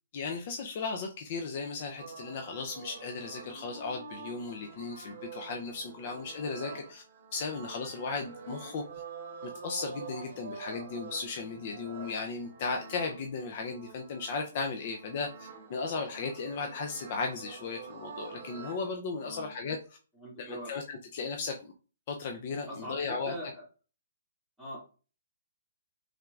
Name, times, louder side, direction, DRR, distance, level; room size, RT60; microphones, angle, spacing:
voice 1, 0.1-7.0 7.3-8.8 9.6-19.8 20.4-21.7 22.1-23.3, left 4 dB, 40° left, 3 dB, 0.6 m, -36 dB
sound 1, 2.0-18.9, right 5 dB, 45° right, 1.6 m, -47 dB
voice 2, 19.2-19.5 20.1-20.7 22.7-23.6 24.6-24.8, equal, ahead, -8 dB, 2.2 m, -42 dB
5.7 x 3.6 x 2.4 m, 0.37 s
hypercardioid pair, 160°, 0 cm